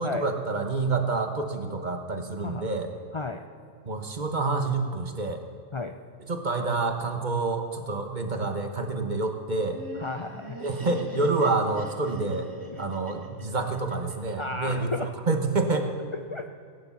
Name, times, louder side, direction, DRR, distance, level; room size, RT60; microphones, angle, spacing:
voice 1, 0.0-2.9 3.8-5.4 6.2-9.8 10.6-12.5 12.8-14.9 15.3-15.9, right 3 dB, 40° right, 5 dB, 1.3 m, -28 dB
Laughter, 9.5-14.5, equal, 15° right, 2.2 m, -42 dB
voice 2, 10.0-10.6 12.7-12.8 14.4-15.1 16.3-16.5, left 3 dB, 35° left, 6 dB, 0.5 m, -33 dB
17.5 x 9.8 x 7.2 m, 2.3 s
omnidirectional pair, 1.3 m